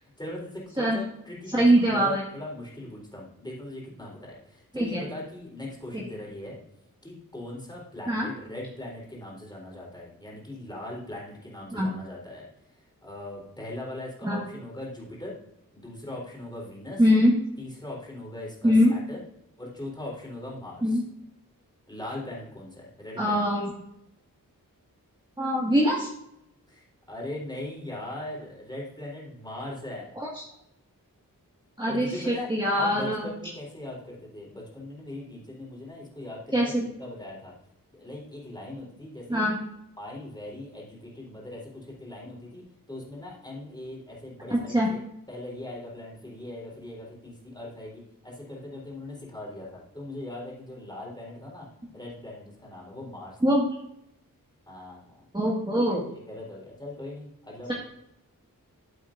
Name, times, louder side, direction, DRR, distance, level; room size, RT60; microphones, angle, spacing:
voice 1, 0.2-6.6 7.0-12.5 13.0-15.4 15.7-17.0 17.6-19.2 19.6-21.0 21.9-23.4 26.7-30.1 31.9-32.5 32.7-37.5 37.9-39.4 40.0-45.0 45.3-51.7 51.9-53.4 54.7-55.1 56.1-57.7, left 1 dB, 10° left, -4 dB, 3.8 m, -40 dB
voice 2, 1.5-2.2 4.7-5.0 5.9-6.0 8.1-8.3 11.7-11.9 14.2-14.4 17.0-17.3 18.6-18.9 20.8-21.0 23.2-23.7 25.4-26.1 30.2-30.4 31.8-33.3 36.5-36.8 39.3-39.6 44.7-44.9 53.4-53.6 55.3-56.0 57.7-57.8, equal, 15° right, -5 dB, 1.8 m, -23 dB
13.0 x 8.0 x 2.6 m, 0.79 s
wide cardioid pair, 110°, 34 cm